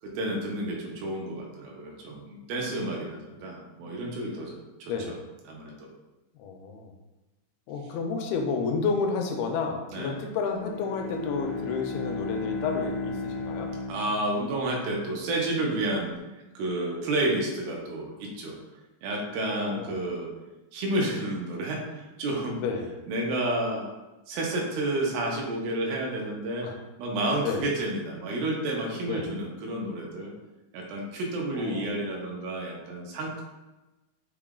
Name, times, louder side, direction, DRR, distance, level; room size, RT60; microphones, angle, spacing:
voice 1, 0.0-4.9 5.5-5.9 9.9-10.2 13.9-16.1 16.6-18.6 19.0-20.3 20.7-22.6 23.1-23.9 24.3-26.7 27.0-30.3 30.7-33.4, right 1 dB, 85° right, -1 dB, 2.6 m, -30 dB
voice 2, 6.4-6.9 7.7-13.7 19.5-20.0 22.6-22.9 26.6-26.7 27.4-27.7 29.1-29.3 31.5-31.9, left 5 dB, 85° left, 3 dB, 2.4 m, -31 dB
Bowed string instrument, 10.6-14.9, left 3 dB, 70° left, 2.0 m, -35 dB
6.0 x 3.6 x 2.3 m, 1.1 s
omnidirectional pair, 4.3 m